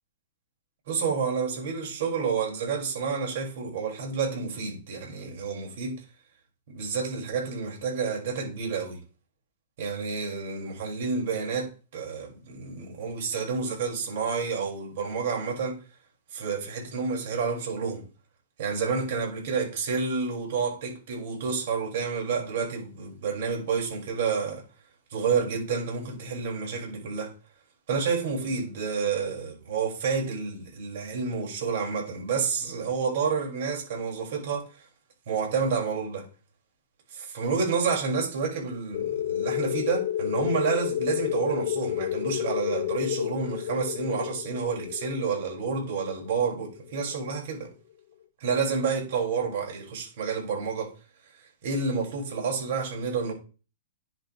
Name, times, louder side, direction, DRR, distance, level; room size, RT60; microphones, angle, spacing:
voice 1, 0.9-6.0 6.7-9.0 9.8-15.8 16.3-18.0 18.6-24.6 25.1-27.3 27.9-34.9 35.3-36.3 37.1-47.7 48.4-50.9 51.6-53.3, right 5 dB, 65° right, 5.8 m, -29 dB
sound 1, 38.9-47.3, left 11 dB, 60° left, 1.4 m, -31 dB
10.0 x 7.2 x 3.3 m
hypercardioid pair, 135°, 0 cm